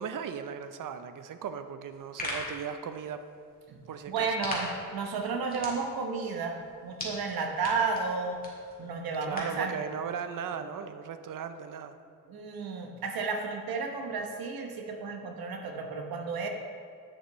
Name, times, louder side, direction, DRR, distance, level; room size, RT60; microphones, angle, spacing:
voice 1, 0.0-3.2 3.9-4.3 9.2-12.0, right 7 dB, 60° right, 10 dB, 0.6 m, -37 dB
sound 1, 1.8-9.7, left 1 dB, 25° left, 2.0 m, -42 dB
voice 2, 4.1-8.4 8.8-9.7 12.3-16.5, right 4 dB, 80° right, 3 dB, 1.0 m, -32 dB
8.9 x 6.7 x 3.1 m, 2.2 s
cardioid pair, 80°, 36 cm